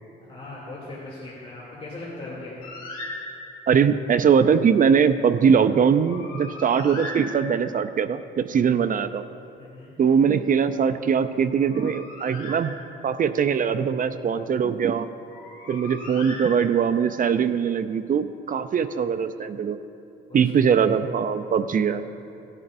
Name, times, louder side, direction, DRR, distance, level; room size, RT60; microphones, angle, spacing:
voice 1, 0.2-2.7 9.6-9.9 20.3-20.8, left 2 dB, 30° left, -7 dB, 2.8 m, -39 dB
Bird, 2.6-3.8 5.8-7.9 11.4-13.2 15.2-17.1, left 1 dB, 80° left, 2.7 m, -39 dB
voice 2, 3.7-9.2 10.0-12.8 13.0-15.1 15.7-19.8 20.3-22.0, right 7 dB, 45° right, 11 dB, 0.5 m, -21 dB
18.0 x 11.0 x 2.6 m, 2.8 s
cardioid pair, 90°, 20 cm